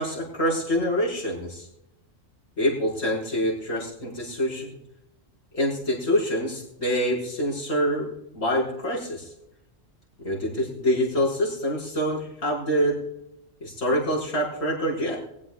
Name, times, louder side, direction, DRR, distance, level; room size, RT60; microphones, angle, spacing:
voice 1, 0.0-1.7 2.6-4.8 5.5-9.3 10.2-13.0 13.6-15.2, equal, 80° left, -5 dB, 6.1 m, -26 dB
23.5 x 15.5 x 2.5 m, 0.85 s
omnidirectional pair, 1.3 m